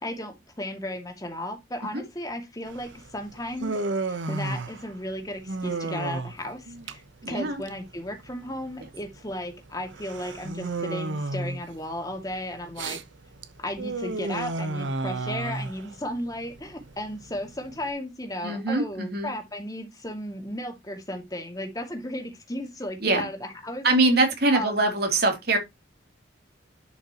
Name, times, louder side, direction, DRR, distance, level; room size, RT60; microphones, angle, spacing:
voice 1, 0.0-7.0 7.3-13.0 13.6-23.9 24.5-24.8, left 1 dB, 20° left, 2.2 m, -35 dB
Human voice, 2.7-17.9, right 2 dB, 80° right, 1.0 m, -33 dB
voice 2, 7.2-7.6 18.4-19.3 23.0-23.2 23.8-25.6, right 2 dB, 55° right, 3.1 m, -23 dB
11.0 x 5.7 x 3.0 m
head